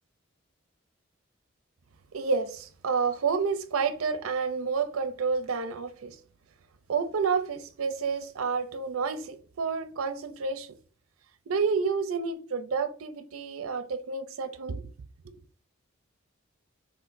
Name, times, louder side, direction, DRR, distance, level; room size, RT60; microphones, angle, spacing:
voice 1, 2.1-6.2 6.9-10.7 11.5-14.9, right 5 dB, 90° right, 0.5 m, -29 dB
6.0 x 2.5 x 2.6 m
head